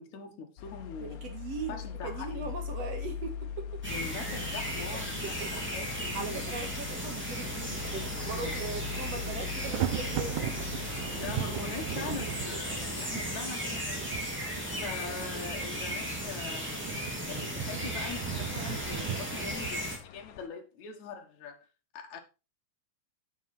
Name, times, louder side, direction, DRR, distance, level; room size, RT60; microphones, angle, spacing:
voice 1, 0.0-1.2 1.7-2.5 3.9-6.4 11.1-14.1 14.8-21.7 21.9-22.2, left 6 dB, 60° left, 2.9 m, -42 dB
sound 1, 0.6-20.5, left 7 dB, 85° left, 2.7 m, -43 dB
voice 2, 1.0-3.8 4.9-5.8 6.1-10.6 14.8-15.2, right 4 dB, 55° right, 2.7 m, -40 dB
sound 2, 3.8-20.0, equal, 5° right, 3.0 m, -36 dB
Thunder, 8.2-8.6 8.9-19.7, right 14 dB, 80° right, 2.3 m, -39 dB
9.3 x 7.3 x 4.4 m
omnidirectional pair, 3.8 m